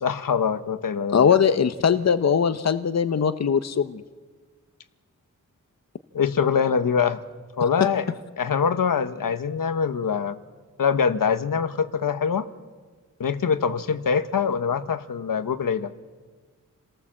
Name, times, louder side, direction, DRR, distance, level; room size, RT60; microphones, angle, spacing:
voice 1, 0.0-1.3 6.1-7.2 7.6-8.0 8.4-10.4 10.8-12.5 13.2-15.9, left 6 dB, 85° left, 11 dB, 1.1 m, -24 dB
voice 2, 1.1-4.0, left 7 dB, 55° left, 11 dB, 0.8 m, -20 dB
28.0 x 18.0 x 7.5 m, 1.4 s
wide cardioid pair, 115°, 32 cm